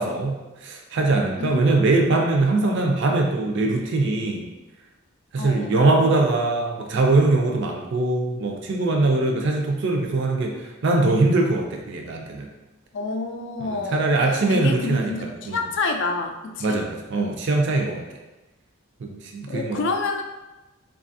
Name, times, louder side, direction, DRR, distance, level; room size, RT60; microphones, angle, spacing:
voice 1, 0.0-4.4 5.3-12.5 13.6-15.1 15.4-15.6 16.6-18.0 19.0-19.9, right 2 dB, 60° right, 2 dB, 0.4 m, -22 dB
voice 2, 5.4-5.7 12.9-16.8 19.5-20.2, left 3 dB, 60° left, 4 dB, 0.4 m, -28 dB
4.0 x 2.4 x 2.6 m, 1.1 s
head